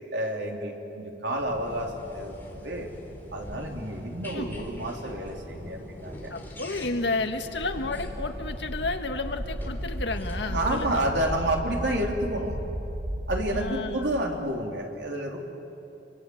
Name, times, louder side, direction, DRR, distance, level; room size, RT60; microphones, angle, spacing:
voice 1, 0.1-2.9 3.3-6.3 10.4-12.6 13.3-15.4, right 1 dB, 85° right, 1 dB, 3.5 m, -30 dB
sound 1, 1.4-11.3, equal, 10° left, 3.7 m, -42 dB
voice 2, 6.3-11.0 13.5-14.1, left 3 dB, 85° left, 6 dB, 1.7 m, -31 dB
sound 2, 7.6-13.7, equal, 50° right, 3.2 m, -34 dB
29.5 x 25.0 x 7.9 m, 3.0 s
head